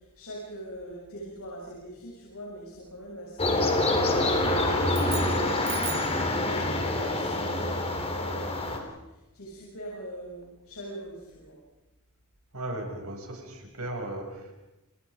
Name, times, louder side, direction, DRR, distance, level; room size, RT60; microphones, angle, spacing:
voice 1, 0.0-4.8 5.2-11.6, right 1 dB, 80° left, -4 dB, 7.5 m, -42 dB
sound 1, 3.4-8.8, left 2 dB, 30° left, 4.1 m, -26 dB
sound 2, 4.9-6.2, right 10 dB, 45° right, 2.9 m, -38 dB
voice 2, 12.5-14.5, right 1 dB, 85° right, 2 dB, 7.1 m, -36 dB
29.5 x 29.5 x 5.2 m, 0.99 s
head